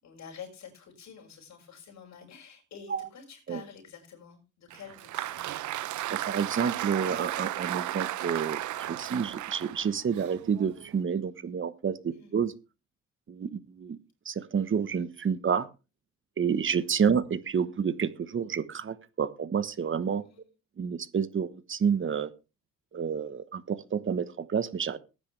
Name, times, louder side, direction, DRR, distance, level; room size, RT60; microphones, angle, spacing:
voice 1, 0.0-5.4 12.1-12.4 20.2-20.4, left 6 dB, 65° left, 0 dB, 6.2 m, -48 dB
Applause, 4.7-11.0, right 14 dB, 75° right, 0.7 m, -34 dB
voice 2, 6.1-12.5 13.3-14.0 14.2-15.7 16.4-20.2 20.8-22.3 22.9-25.0, right 7 dB, 40° right, 14 dB, 1.2 m, -29 dB
18.0 x 9.8 x 3.4 m, 0.29 s
cardioid pair, 90°, 30 cm